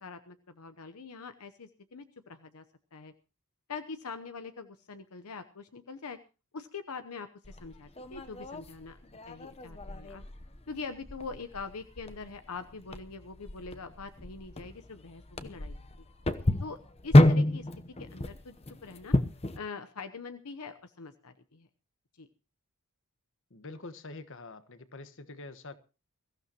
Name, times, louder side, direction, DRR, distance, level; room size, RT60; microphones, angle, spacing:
voice 1, 0.0-2.6 2.9-3.1 3.7-6.2 6.5-9.0 9.3-10.2 10.7-15.9 16.6-16.8 17.0-17.7 18.0-19.1 19.5-21.7 22.2-22.3, left 4 dB, 80° left, 0.9 m, -43 dB
sound 1, 7.4-19.6, left 1 dB, 30° left, 0.9 m, -29 dB
voice 2, 23.5-25.7, left 3 dB, 60° left, 1.3 m, -45 dB
22.0 x 15.0 x 3.0 m
head